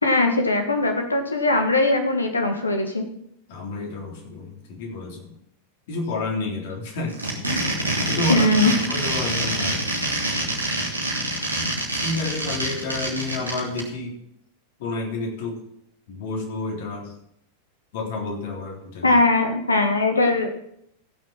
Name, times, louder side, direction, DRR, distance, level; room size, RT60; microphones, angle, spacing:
voice 1, 0.0-3.0 8.3-8.7 19.0-20.5, left 2 dB, 80° left, 5 dB, 1.7 m, -20 dB
voice 2, 3.5-5.3 5.9-7.2 7.4-7.7 8.1-9.9 11.9-14.2 14.8-15.6 16.1-17.2 17.9-19.2, left 3 dB, 55° left, 0 dB, 3.4 m, -30 dB
sound 1, 7.1-13.8, right 1 dB, 80° right, 2.7 m, -26 dB
15.5 x 6.5 x 5.9 m, 0.73 s
figure-of-eight pair, 90°, 0 cm